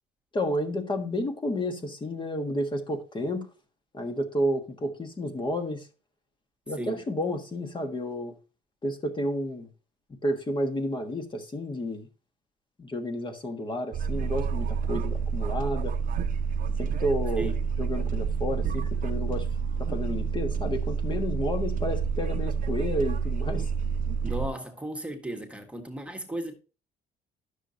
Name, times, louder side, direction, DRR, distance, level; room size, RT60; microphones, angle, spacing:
voice 1, 0.3-3.5 3.9-5.9 6.7-8.3 8.8-9.7 10.2-12.1 12.8-15.9 16.8-17.5 17.8-19.5 19.8-23.7, left 1 dB, 30° left, 1.5 m, -31 dB
sound 1, 13.9-24.5, right 6 dB, 50° right, 0.7 m, -29 dB
voice 2, 24.2-26.5, right 1 dB, 5° right, 1.5 m, -35 dB
12.0 x 6.6 x 2.8 m
cardioid pair, 110°, 17 cm